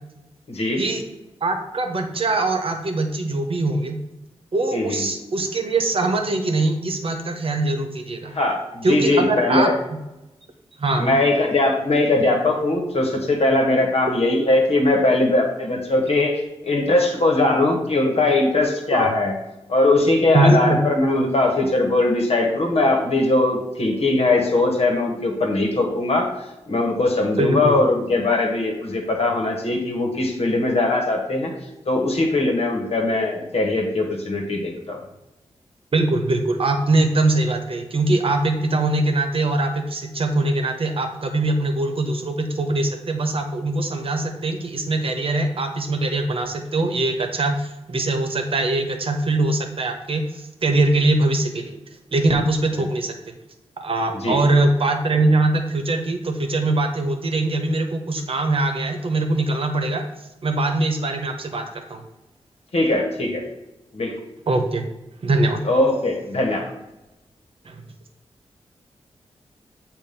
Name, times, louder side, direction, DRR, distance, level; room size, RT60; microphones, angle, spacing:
voice 1, 0.5-0.8 4.7-5.1 8.3-9.8 11.0-19.3 19.7-31.5 31.9-35.0 54.2-54.4 62.7-63.4 63.9-64.1 65.6-66.7, left 2 dB, 65° left, 2 dB, 1.3 m, -20 dB
voice 2, 1.4-4.0 4.5-8.3 8.8-9.7 10.8-11.2 18.9-19.1 20.3-20.8 27.4-27.8 35.9-51.8 52.1-53.2 53.8-60.0 60.4-62.0 64.5-64.8 65.2-65.7 67.6-67.8, right 2 dB, 55° right, 4 dB, 0.9 m, -22 dB
7.1 x 2.6 x 5.2 m, 0.96 s
cardioid pair, 55°, 11 cm